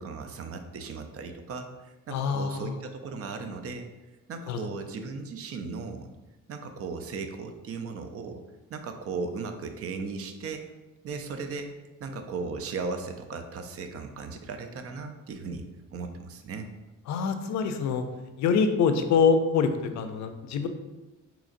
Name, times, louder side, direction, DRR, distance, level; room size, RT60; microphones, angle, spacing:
voice 1, 0.0-3.9 4.3-6.1 6.5-8.4 8.7-10.6 11.0-11.7 12.0-15.6 15.9-16.7, right 4 dB, 50° right, 6 dB, 0.5 m, -36 dB
voice 2, 2.1-2.7 4.5-4.6 17.1-18.0 18.4-20.7, left 5 dB, 65° left, 8 dB, 0.5 m, -25 dB
3.8 x 2.9 x 2.5 m, 1.1 s
cardioid pair, 90°, 30 cm